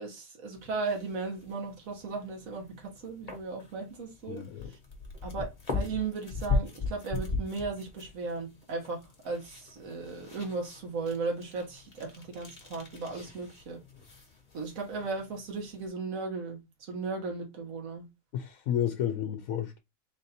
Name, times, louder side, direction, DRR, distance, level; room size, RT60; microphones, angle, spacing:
voice 1, 0.0-4.4 5.2-13.8 14.5-18.1, right 4 dB, 75° right, 1.7 m, -36 dB
sound 1, 0.5-15.9, left 3 dB, 30° left, 1.1 m, -39 dB
voice 2, 4.3-4.7 18.3-19.8, left 10 dB, 90° left, 1.0 m, -31 dB
4.0 x 2.6 x 4.1 m
omnidirectional pair, 1.4 m